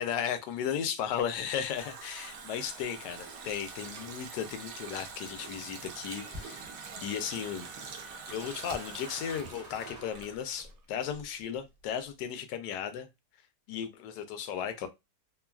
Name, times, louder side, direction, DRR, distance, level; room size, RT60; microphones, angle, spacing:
voice 1, 0.0-7.7 8.3-13.1 13.7-14.9, left 8 dB, 75° left, 1.2 m, -35 dB
Water tap faucet, 1.2-10.9 11.1-11.2, right 5 dB, 70° right, 0.8 m, -45 dB
sound 1, 4.9-10.7, equal, 45° right, 0.5 m, -50 dB
3.0 x 2.3 x 2.2 m
omnidirectional pair, 1.9 m